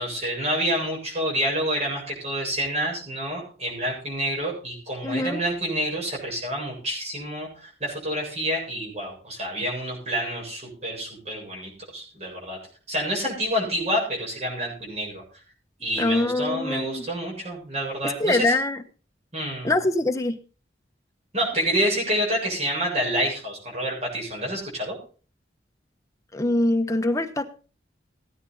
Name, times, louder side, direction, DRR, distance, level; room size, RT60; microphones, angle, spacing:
voice 1, 0.0-12.6 12.9-15.2 15.8-18.6 19.3-19.7 21.3-25.0, equal, 35° right, -2 dB, 8.0 m, -28 dB
voice 2, 5.0-5.4 16.0-17.1 18.0-18.8 19.6-20.4 26.3-27.5, left 2 dB, 20° left, 6 dB, 1.2 m, -24 dB
18.0 x 10.0 x 4.1 m, 0.38 s
head